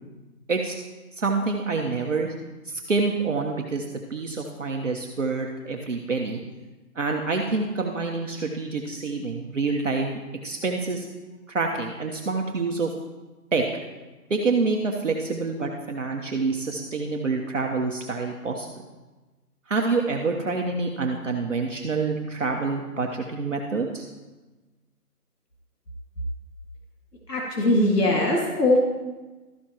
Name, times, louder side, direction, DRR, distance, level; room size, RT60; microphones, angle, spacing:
voice 1, 1.1-2.3 2.7-3.8 4.1-6.4 6.9-10.1 10.4-11.1 11.5-12.9 13.5-13.7 14.3-18.7 19.7-24.0, right 4 dB, 50° right, 1 dB, 1.1 m, -27 dB
voice 2, 27.3-28.8, left 1 dB, 80° left, -1 dB, 2.1 m, -21 dB
13.0 x 10.0 x 3.0 m, 1.2 s
figure-of-eight pair, 170°, 47 cm